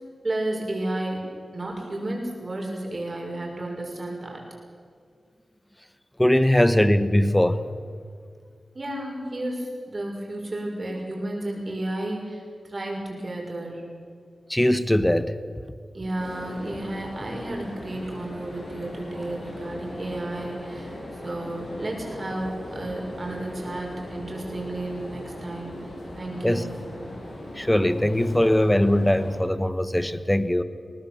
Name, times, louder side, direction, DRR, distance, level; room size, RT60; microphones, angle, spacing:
voice 1, 0.2-1.2 1.5-4.4 8.7-12.4 12.7-13.9 15.9-20.9 21.2-25.7 26.2-26.8, right 1 dB, 40° right, 0 dB, 6.1 m, -32 dB
voice 2, 6.2-7.6 14.5-15.3 26.4-26.7 27.6-30.6, left 1 dB, 10° left, 13 dB, 1.1 m, -21 dB
sound 1, 16.2-29.4, left 1 dB, 60° left, 7.4 m, -39 dB
22.0 x 19.0 x 7.3 m, 2.2 s
wide cardioid pair, 85°, 0 cm